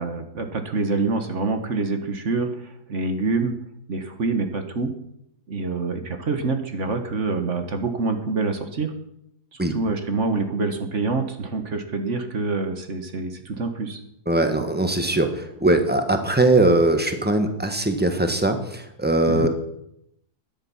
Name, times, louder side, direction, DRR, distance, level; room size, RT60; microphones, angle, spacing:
voice 1, 0.0-3.5 3.9-4.9 5.5-8.9 9.5-14.0 19.3-19.5, right 3 dB, 50° right, 7 dB, 1.6 m, -26 dB
voice 2, 14.3-19.5, right 2 dB, 5° right, 6 dB, 1.3 m, -21 dB
13.0 x 11.0 x 5.7 m, 0.77 s
omnidirectional pair, 1.7 m